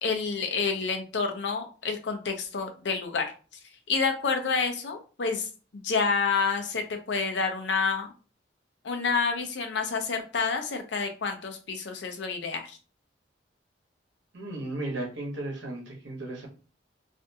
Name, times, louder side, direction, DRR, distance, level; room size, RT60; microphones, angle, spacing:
voice 1, 0.0-3.3 3.9-5.5 5.7-8.1 8.8-12.8, left 5 dB, 70° left, 5 dB, 0.5 m, -28 dB
voice 2, 14.3-16.5, right 2 dB, 75° right, -1 dB, 1.0 m, -35 dB
2.5 x 2.2 x 2.6 m, 0.36 s
head